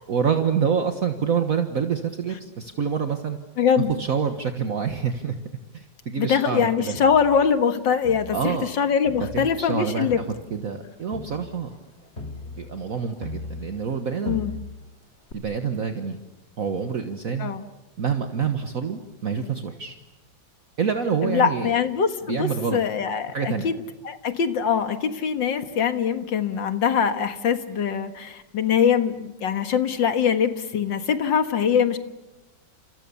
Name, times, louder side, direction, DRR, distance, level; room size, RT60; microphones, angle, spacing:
voice 1, 0.1-3.4 3.8-5.4 5.7-7.0 8.3-8.7 9.3-10.2 10.5-11.8 12.5-14.4 15.3-16.2 16.6-17.5 18.0-20.0 20.8-21.7 22.3-22.8 23.3-23.7, right 6 dB, 50° right, 6 dB, 1.7 m, -27 dB
voice 2, 3.6-3.9 6.2-10.2 14.3-14.5 17.4-17.6 21.2-23.8 24.0-32.0, left 7 dB, 80° left, 9 dB, 2.2 m, -23 dB
Crowd, 6.9-8.7 9.1-14.0 14.2-14.9 15.3-15.4, left 2 dB, 35° left, 2.9 m, -39 dB
30.0 x 28.5 x 7.0 m, 1.0 s
omnidirectional pair, 2.0 m